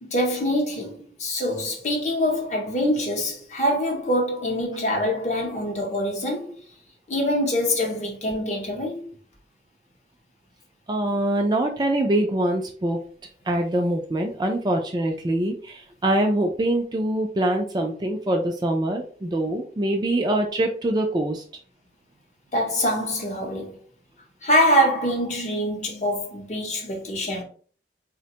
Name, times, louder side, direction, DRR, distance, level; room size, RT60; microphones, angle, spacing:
voice 1, 0.0-6.6 7.1-9.1 22.5-23.8 24.4-27.4, equal, 40° left, 0.7 m, -24 dB
voice 2, 10.9-13.0 13.5-21.4, right 1 dB, 25° right, 0.3 m, -24 dB
3.2 x 2.1 x 2.8 m
head